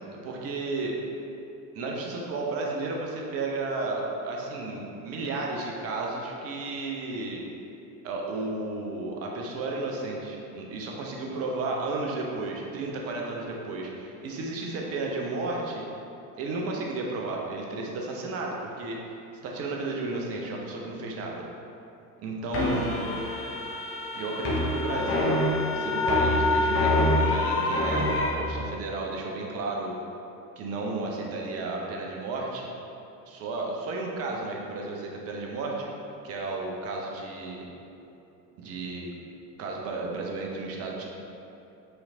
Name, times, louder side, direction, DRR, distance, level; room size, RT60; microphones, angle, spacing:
voice 1, 0.2-1.0 1.7-7.4 8.0-15.8 16.4-19.0 19.4-21.4 22.2-23.0 24.1-25.4 25.7-30.0 30.6-32.7 33.3-35.9 36.2-37.6 38.6-39.1 39.6-41.1, right 3 dB, 30° right, -1 dB, 0.7 m, -33 dB
sound 1, 22.5-28.3, left 2 dB, 30° left, 0.8 m, -25 dB
5.7 x 3.2 x 2.7 m, 2.9 s
figure-of-eight pair, 75°, 48 cm